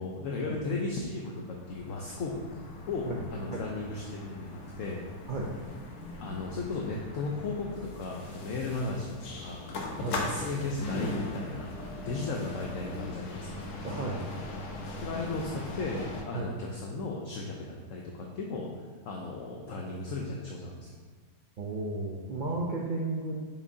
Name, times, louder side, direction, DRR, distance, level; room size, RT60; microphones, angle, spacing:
voice 1, 0.0-5.0 6.2-9.7 10.0-13.7 15.0-18.7 19.0-21.0, left 3 dB, 65° left, -1 dB, 0.9 m, -36 dB
sound 1, 1.1-16.2, left 2 dB, 80° left, 1.4 m, -40 dB
voice 2, 13.8-14.3 16.3-16.5 21.6-23.3, right 2 dB, 85° right, -3 dB, 0.4 m, -33 dB
7.0 x 5.2 x 2.7 m, 1.4 s
omnidirectional pair, 1.7 m